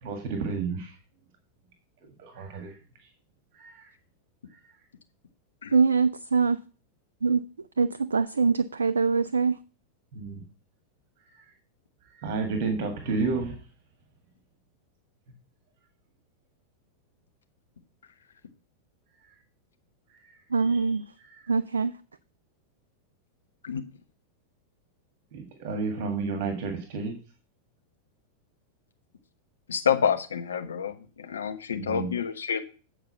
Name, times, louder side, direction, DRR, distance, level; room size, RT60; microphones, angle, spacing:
voice 1, 0.0-0.9 2.2-2.7 3.0-3.1 3.5-3.9 10.1-10.4 11.3-11.4 12.1-13.6 20.1-20.3 20.6-20.9 21.2-21.5 25.3-27.2 31.8-32.1, right 4 dB, 50° right, 1.7 m, -31 dB
voice 2, 5.7-6.6 7.2-7.4 7.8-9.6 20.5-21.0 21.5-22.0, right 5 dB, 75° right, 0.4 m, -23 dB
voice 3, 29.7-32.6, left 7 dB, 70° left, 1.1 m, -28 dB
8.8 x 5.0 x 5.5 m
figure-of-eight pair, 90°, 0 cm